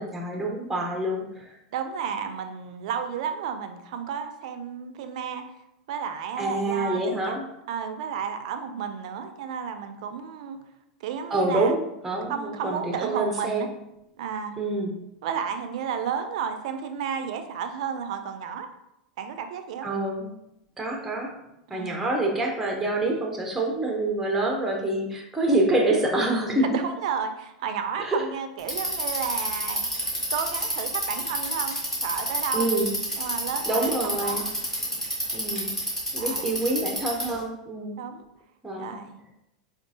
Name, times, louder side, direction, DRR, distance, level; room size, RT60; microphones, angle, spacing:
voice 1, 0.0-1.5 6.4-7.4 11.3-13.7 14.6-14.9 19.8-20.3 20.8-21.3 21.7-26.7 28.0-28.2 32.5-32.9 33.7-34.4 35.3-35.7 36.1-37.9 38.6-39.0, right 2 dB, 10° right, 1 dB, 0.7 m, -26 dB
voice 2, 1.7-5.4 5.9-7.4 7.7-10.6 11.0-11.7 12.3-13.7 14.2-14.5 15.2-18.7 19.2-19.9 21.7-22.0 26.7-29.8 30.3-32.6 33.2-34.5 34.9-35.1 36.2-36.6 38.0-38.2 38.8-39.2, right 7 dB, 65° right, 7 dB, 0.4 m, -32 dB
Bicycle, 28.6-37.4, equal, 10° left, 1.4 m, -28 dB
4.4 x 2.4 x 2.7 m, 0.84 s
hypercardioid pair, 115°, 4 cm